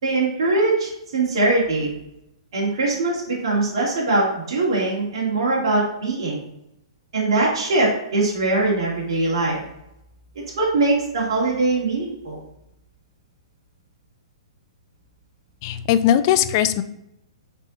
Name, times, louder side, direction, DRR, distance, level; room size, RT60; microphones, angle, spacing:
voice 1, 0.0-1.9 2.5-6.4 7.1-9.6 10.3-12.4, right 2 dB, 60° right, -5 dB, 2.3 m, -22 dB
voice 2, 15.6-16.8, left 11 dB, 40° left, 12 dB, 0.4 m, -19 dB
6.5 x 3.6 x 4.0 m, 0.84 s
figure-of-eight pair, 120°, 3 cm